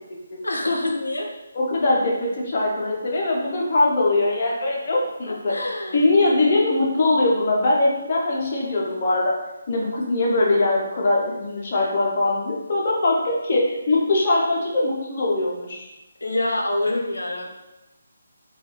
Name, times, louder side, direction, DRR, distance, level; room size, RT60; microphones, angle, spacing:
voice 1, 0.4-1.3 5.3-6.0 16.2-17.5, left 2 dB, 70° left, 1 dB, 0.8 m, -26 dB
voice 2, 1.5-5.5 5.9-9.3 9.7-15.9, left 2 dB, 40° left, -3 dB, 0.9 m, -21 dB
4.4 x 2.5 x 3.1 m, 0.99 s
figure-of-eight pair, 145°, 0 cm